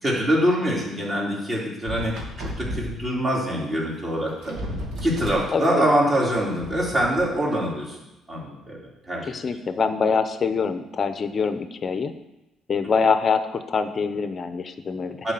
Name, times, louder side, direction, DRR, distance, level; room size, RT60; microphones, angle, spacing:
voice 1, 0.0-4.6 5.0-8.0 8.3-8.8 9.1-9.4 15.2-15.3, equal, 25° right, -4 dB, 3.2 m, -24 dB
sound 1, 1.8-3.0 4.0-4.1 4.3-5.5 6.3-7.2, equal, 75° right, 2.3 m, -33 dB
voice 2, 5.5-5.9 9.3-12.1 12.7-15.3, left 5 dB, 35° left, 10 dB, 0.8 m, -24 dB
10.5 x 4.8 x 7.7 m, 0.95 s
cardioid pair, 130°, 0 cm